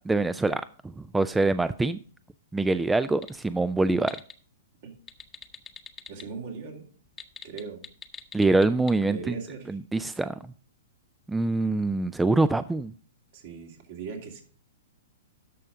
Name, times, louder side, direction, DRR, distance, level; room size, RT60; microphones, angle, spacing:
voice 1, 0.0-2.0 2.5-4.2 8.3-9.4 9.7-10.4 11.3-12.9, right 2 dB, 10° right, 14 dB, 0.3 m, -25 dB
sound 1, 3.2-3.4 3.8-4.3 5.0-6.2 7.1-8.9, left 8 dB, 20° left, 0.9 m, -41 dB
voice 2, 6.1-6.9 7.4-7.8 9.1-9.8 13.3-14.4, right 5 dB, 60° right, 2 dB, 2.6 m, -39 dB
13.0 x 5.5 x 3.6 m, 0.43 s
hypercardioid pair, 115°, 0 cm